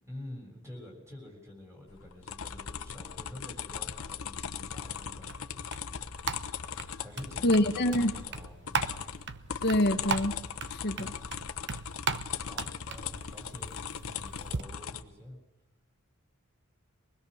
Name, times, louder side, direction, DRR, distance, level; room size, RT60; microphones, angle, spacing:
voice 1, 0.0-5.6 7.0-9.0 12.2-15.4, left 1 dB, 15° right, 0 dB, 6.9 m, -48 dB
sound 1, 1.9-15.0, left 7 dB, 80° left, 1.1 m, -39 dB
sound 2, 5.0-14.6, right 5 dB, 55° right, 1.0 m, -38 dB
voice 2, 7.4-8.1 9.6-10.3 10.7-11.1, left 1 dB, 50° left, 5 dB, 1.3 m, -25 dB
24.0 x 20.5 x 6.5 m, 1.1 s
head